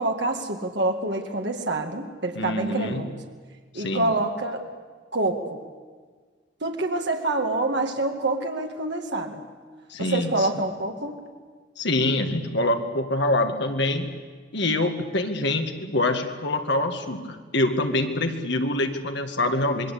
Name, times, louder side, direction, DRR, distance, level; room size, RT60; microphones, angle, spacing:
voice 1, 0.0-3.1 3.7-4.6 5.1-5.7 6.6-9.5 10.0-11.2, right 2 dB, 60° right, 3 dB, 2.2 m, -26 dB
voice 2, 2.4-3.1 3.7-4.0 9.9-10.5 11.8-14.1 14.5-19.9, left 2 dB, 65° left, 5 dB, 2.1 m, -25 dB
26.5 x 22.0 x 8.6 m, 1.5 s
head